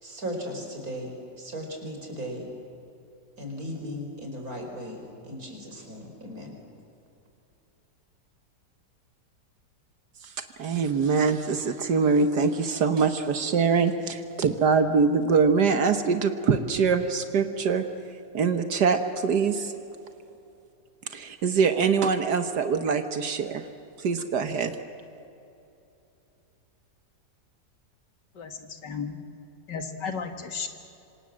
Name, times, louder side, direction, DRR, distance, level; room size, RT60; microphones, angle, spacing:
voice 1, 0.0-2.5 3.4-6.5, equal, 55° right, 2 dB, 5.2 m, -37 dB
voice 2, 10.6-17.8 18.3-19.7 21.1-23.7 24.0-24.7, right 5 dB, 70° right, 8 dB, 1.7 m, -24 dB
voice 3, 28.4-29.2 29.7-30.7, left 5 dB, 90° left, 6 dB, 2.5 m, -34 dB
27.0 x 25.5 x 7.5 m, 2.8 s
omnidirectional pair, 1.8 m